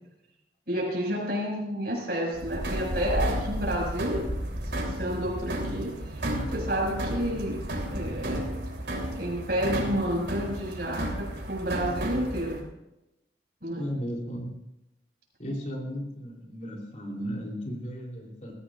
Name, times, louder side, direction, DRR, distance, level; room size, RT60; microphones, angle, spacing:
voice 1, 0.7-4.3 4.6-7.6 7.9-8.6 9.2-12.6 13.6-13.9, equal, 60° right, -1 dB, 5.9 m, -30 dB
sound 1, 2.3-12.6, equal, 80° right, 3.4 m, -32 dB
voice 2, 13.8-14.6 15.4-18.5, equal, 40° left, -1 dB, 3.4 m, -35 dB
21.5 x 15.0 x 2.5 m, 0.91 s
head